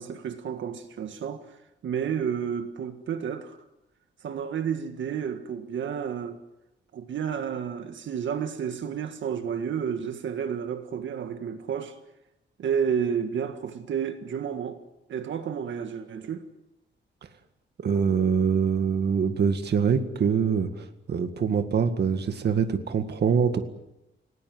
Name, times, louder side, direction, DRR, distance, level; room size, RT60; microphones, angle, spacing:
voice 1, 0.0-1.6 1.8-3.6 4.2-6.4 6.9-12.0 12.6-14.8 15.1-16.5, right 7 dB, 75° right, 1.8 m, -31 dB
voice 2, 17.8-23.6, right 6 dB, 60° right, 1.9 m, -24 dB
29.5 x 19.0 x 7.8 m
wide cardioid pair, 145°, 20 cm